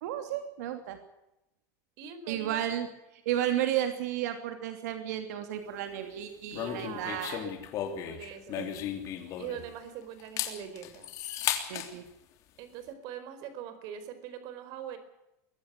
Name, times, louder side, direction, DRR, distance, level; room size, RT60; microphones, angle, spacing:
voice 1, 0.0-1.0 2.3-2.9 3.2-7.5 8.6-8.8 11.7-12.0, right 11 dB, 85° right, 7 dB, 2.9 m, -33 dB
voice 2, 2.0-2.7 6.6-7.5 8.0-8.9 9.4-11.1 12.6-15.0, right 9 dB, 45° right, 11 dB, 4.5 m, -42 dB
sound 1, 6.5-9.8 10.2-11.9, left 10 dB, 40° left, 3.2 m, -35 dB
23.0 x 16.0 x 8.2 m, 0.89 s
supercardioid pair, 165°, 9 cm